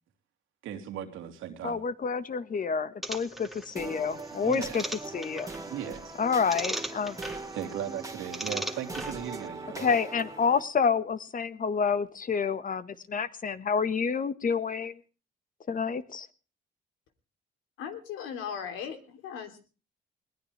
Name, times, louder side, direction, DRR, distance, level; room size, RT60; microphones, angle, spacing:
voice 1, 0.6-1.8 4.3-4.9 5.7-6.1 7.5-10.0, right 9 dB, 90° right, 5 dB, 2.9 m, -37 dB
voice 2, 1.6-4.8 5.1-5.5 6.2-7.2 9.8-15.0 15.7-16.3, left 6 dB, 45° left, 13 dB, 1.6 m, -28 dB
sound 1, 3.0-9.5, right 1 dB, ahead, 2.1 m, -40 dB
sound 2, 3.8-10.6, right 3 dB, 15° right, 2.2 m, -41 dB
voice 3, 17.8-19.6, left 7 dB, 90° left, 7 dB, 3.2 m, -38 dB
21.5 x 19.0 x 3.4 m, 0.37 s
cardioid pair, 90°, 20 cm